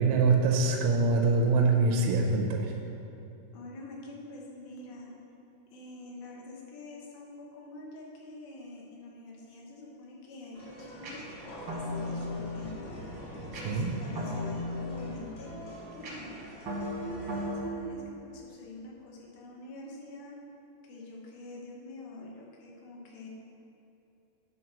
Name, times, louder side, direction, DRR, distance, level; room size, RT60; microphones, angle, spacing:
voice 1, 0.0-2.7 13.5-14.0, right 3 dB, 80° right, 1 dB, 2.1 m, -24 dB
voice 2, 3.5-5.1 5.7-13.0 13.6-20.4 20.8-23.3, left 2 dB, 85° left, -2 dB, 3.0 m, -46 dB
sound 1, 10.5-17.4, right 1 dB, 40° left, 1.4 m, -48 dB
sound 2, 11.0-17.8, left 1 dB, 60° right, 1.3 m, -37 dB
Thunder, 11.3-18.4, equal, 60° left, 1.9 m, -49 dB
9.4 x 3.2 x 6.0 m, 2.9 s
omnidirectional pair, 4.2 m